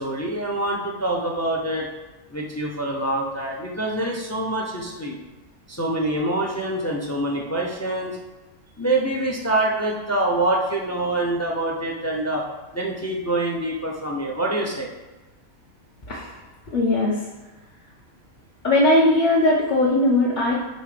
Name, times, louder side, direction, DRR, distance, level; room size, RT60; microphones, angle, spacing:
voice 1, 0.0-1.9 2.3-5.2 5.7-8.2 8.8-12.4 12.7-14.9, right 1 dB, 25° left, 0 dB, 0.3 m, -25 dB
voice 2, 16.7-17.2 18.6-20.5, left 1 dB, 40° left, -6 dB, 0.9 m, -19 dB
5.4 x 3.5 x 5.0 m, 1.2 s
omnidirectional pair, 1.4 m